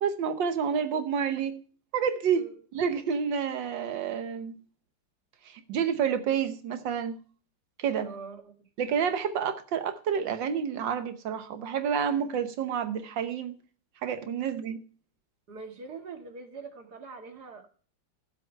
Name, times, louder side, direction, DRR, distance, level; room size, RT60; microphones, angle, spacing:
voice 1, 0.0-1.6 1.9-2.4 2.7-4.6 5.4-7.2 7.8-8.1 8.8-13.6 14.0-14.8, right 7 dB, 80° right, 1.7 m, -29 dB
voice 2, 7.9-8.7 15.5-17.7, right 4 dB, 60° right, 2.6 m, -43 dB
15.0 x 7.9 x 4.5 m
omnidirectional pair, 2.0 m